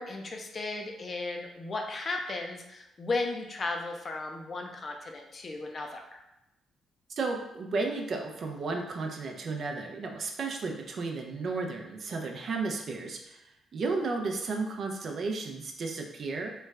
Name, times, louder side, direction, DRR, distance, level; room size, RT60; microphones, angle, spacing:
voice 1, 0.0-6.2, left 3 dB, 40° left, 3 dB, 0.5 m, -35 dB
voice 2, 7.1-16.5, right 3 dB, 55° right, 2 dB, 0.5 m, -33 dB
3.1 x 2.3 x 3.2 m, 0.88 s
cardioid pair, 95°, 0 cm